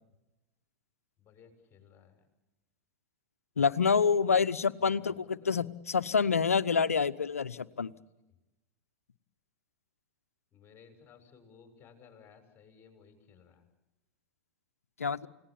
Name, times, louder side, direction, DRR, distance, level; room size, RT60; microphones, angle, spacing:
voice 1, 1.2-2.3 4.2-4.5 4.8-5.6 10.5-13.6, left 6 dB, 30° left, 6 dB, 6.7 m, -58 dB
voice 2, 3.6-7.9 15.0-15.3, left 5 dB, 90° left, 16 dB, 0.9 m, -27 dB
29.0 x 18.5 x 8.6 m, 1.0 s
hypercardioid pair, 95°, 8 cm